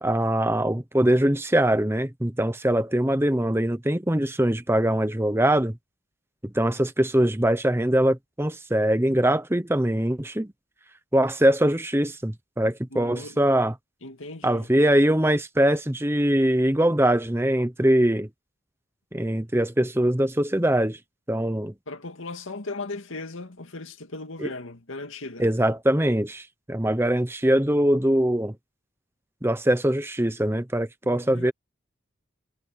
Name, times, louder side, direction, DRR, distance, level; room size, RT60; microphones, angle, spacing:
voice 1, 0.0-5.7 6.4-10.5 11.1-13.7 14.4-18.3 19.1-21.0 21.3-21.7 24.4-24.5 25.4-28.5 29.4-31.5, right 1 dB, 10° right, 1.0 m, -22 dB
voice 2, 12.9-13.4 14.0-14.7 21.9-25.5 31.0-31.5, left 2 dB, 85° left, 2.3 m, -37 dB
head